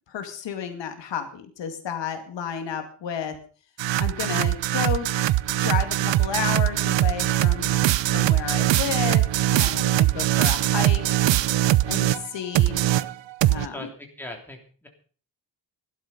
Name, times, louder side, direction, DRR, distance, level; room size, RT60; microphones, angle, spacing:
voice 1, 0.1-3.4 4.0-5.1 5.6-7.8 8.1-11.0 11.9-12.8 13.5-13.9, left 8 dB, 75° left, 6 dB, 2.5 m, -31 dB
sound 1, 3.8-12.3 12.6-13.7, right 14 dB, 75° right, 0.7 m, -22 dB
voice 2, 13.6-14.9, left 1 dB, 5° left, 2 dB, 3.3 m, -40 dB
16.5 x 12.0 x 5.3 m, 0.41 s
wide cardioid pair, 155°, 44 cm